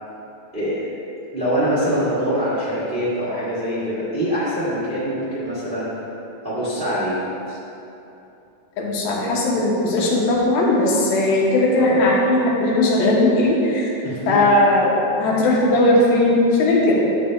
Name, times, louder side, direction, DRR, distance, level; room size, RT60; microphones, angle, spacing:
voice 1, 0.5-0.9 1.3-5.9 6.4-7.1 11.8-12.0 14.0-14.4, equal, 90° right, -10 dB, 0.4 m, -24 dB
voice 2, 8.8-13.9 14.3-17.2, left 1 dB, 75° left, -3 dB, 2.5 m, -18 dB
9.9 x 7.4 x 2.2 m, 2.9 s
omnidirectional pair, 4.2 m